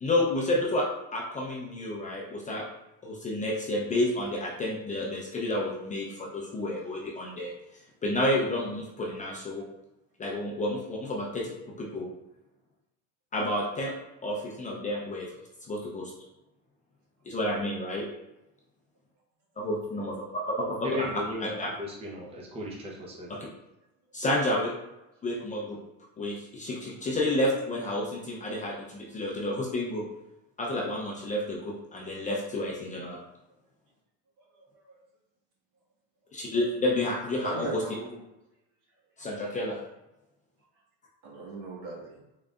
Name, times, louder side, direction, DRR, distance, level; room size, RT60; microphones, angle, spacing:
voice 1, 0.0-2.6 3.0-7.5 8.0-9.6 10.2-11.5 11.8-12.1 13.3-13.9 14.2-15.3 15.7-16.1 17.2-18.1 19.6-20.9 21.4-21.7 23.3-23.4 24.1-24.7 25.2-25.8 26.2-30.0 30.6-33.2 36.3-37.8 39.2-39.8, left 1 dB, 20° left, -3 dB, 0.5 m, -30 dB
voice 2, 20.8-23.3, left 1 dB, 15° right, -3 dB, 0.7 m, -36 dB
voice 3, 34.5-34.9 37.4-38.2 41.2-42.2, right 3 dB, 55° right, -2 dB, 1.3 m, -38 dB
3.8 x 3.2 x 2.4 m, 0.94 s
cardioid pair, 135°, 37 cm